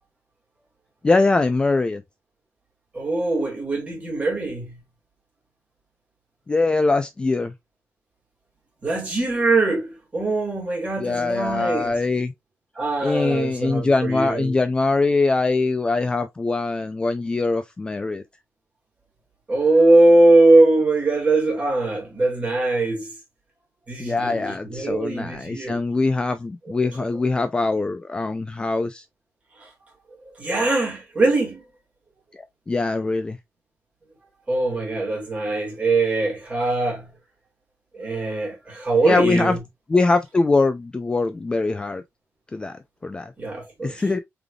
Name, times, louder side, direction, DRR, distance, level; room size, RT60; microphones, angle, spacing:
voice 1, 1.0-2.0 6.5-7.5 11.0-12.3 13.0-18.2 24.0-29.0 32.3-33.4 39.0-39.6 39.9-42.0 42.5-43.3 43.8-44.2, left 3 dB, 20° left, 0.3 m, -22 dB
voice 2, 2.9-4.8 8.8-12.0 12.8-14.5 19.5-23.1 23.9-25.8 29.6-29.7 30.3-31.6 34.5-37.1 37.9-39.6 43.4-44.0, right 2 dB, 30° right, 1.9 m, -21 dB
3.7 x 3.4 x 2.3 m
wide cardioid pair, 145°, 5 cm